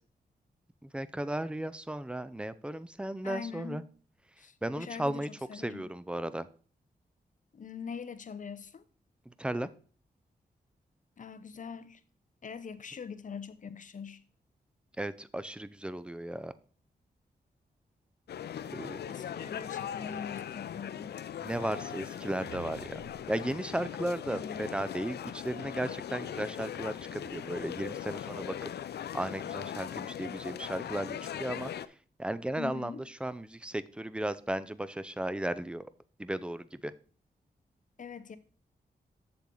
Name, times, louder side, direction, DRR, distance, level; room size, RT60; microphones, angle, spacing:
voice 1, 0.8-3.8 4.6-6.5 9.3-9.7 15.0-16.5 18.7-19.0 21.4-23.0 23.3-31.7 32.2-35.9 36.2-36.9, right 1 dB, 5° right, 0.5 m, -35 dB
voice 2, 3.2-3.9 4.4-5.9 7.5-8.8 11.2-12.0 12.4-14.2 19.1-21.2 23.8-23.9 24.3-24.6 32.6-33.0 38.0-38.4, left 6 dB, 50° left, 0.8 m, -43 dB
sound 1, 18.3-31.9, left 9 dB, 80° left, 0.5 m, -40 dB
sound 2, 21.5-23.4, right 10 dB, 75° right, 0.5 m, -52 dB
7.5 x 7.2 x 3.8 m
cardioid pair, 85°, 17 cm